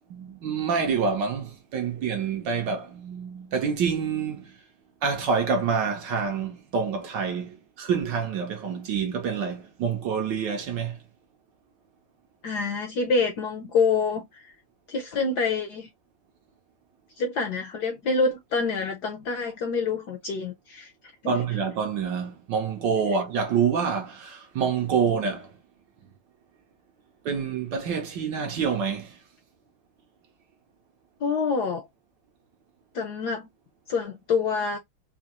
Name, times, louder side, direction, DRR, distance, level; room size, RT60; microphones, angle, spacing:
voice 1, 0.1-4.6 5.0-11.0 21.2-25.5 27.2-29.2, right 6 dB, 65° right, 1.2 m, -27 dB
voice 2, 12.4-14.5 14.9-15.9 17.2-20.9 21.2-21.3 31.2-31.9 32.9-33.5 33.9-34.8, left 4 dB, 65° left, 1.0 m, -26 dB
4.1 x 2.6 x 2.9 m
omnidirectional pair, 2.4 m